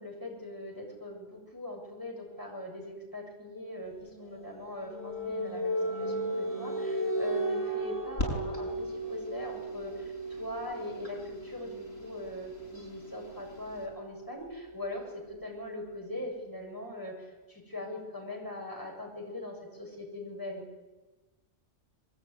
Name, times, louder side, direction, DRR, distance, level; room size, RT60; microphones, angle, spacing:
voice 1, 0.0-20.6, left 2 dB, 15° left, 0 dB, 7.6 m, -41 dB
sound 1, 4.0-15.6, right 1 dB, 30° right, 3.7 m, -36 dB
sound 2, 8.2-13.9, equal, 60° left, 7.3 m, -42 dB
25.0 x 22.5 x 9.8 m, 1.2 s
omnidirectional pair, 1.2 m